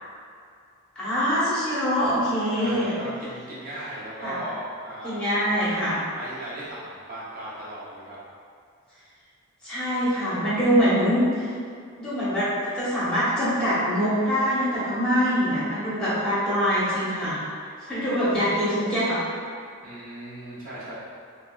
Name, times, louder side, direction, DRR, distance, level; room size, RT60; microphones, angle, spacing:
voice 1, 1.0-2.9 4.2-4.4 5.0-6.0 9.6-11.5 12.0-12.5 12.7-17.4 17.8-19.2, equal, 5° left, -12 dB, 0.9 m, -24 dB
voice 2, 2.6-5.4 6.1-8.2 19.8-20.9, right 1 dB, 40° right, -8 dB, 0.7 m, -37 dB
4.0 x 2.0 x 2.3 m, 2.3 s
head